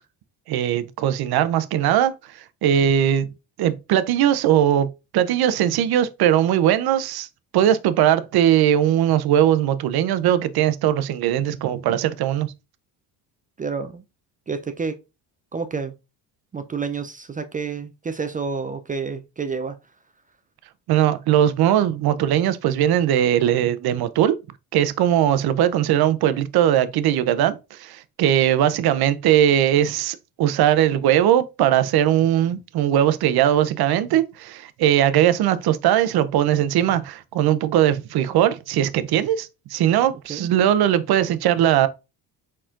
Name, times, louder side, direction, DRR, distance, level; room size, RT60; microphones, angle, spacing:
voice 1, 0.5-2.1 2.6-3.3 3.6-4.9 5.1-7.3 7.5-12.5 20.9-24.4 24.7-41.9, right 11 dB, 55° right, 0.6 m, -19 dB
voice 2, 13.6-14.0 14.5-15.0 15.5-15.9 16.5-19.8 40.3-40.5, right 5 dB, 20° right, 0.3 m, -29 dB
4.3 x 4.2 x 2.4 m
cardioid pair, 90°, 44 cm